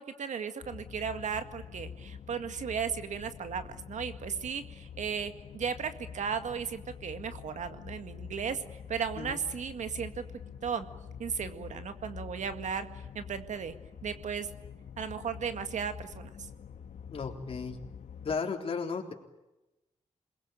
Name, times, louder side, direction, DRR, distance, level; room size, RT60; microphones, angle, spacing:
voice 1, 0.0-10.3 10.6-10.9 11.2-12.9 13.1-13.7 14.0-14.5 15.0-16.5, right 7 dB, 75° right, 9 dB, 2.0 m, -35 dB
sound 1, 0.6-18.4, left 7 dB, 80° left, 1.8 m, -46 dB
voice 2, 17.1-17.8 18.2-19.1, left 5 dB, 50° left, 2 dB, 3.8 m, -34 dB
28.0 x 21.5 x 9.2 m, 0.99 s
wide cardioid pair, 140°, 13 cm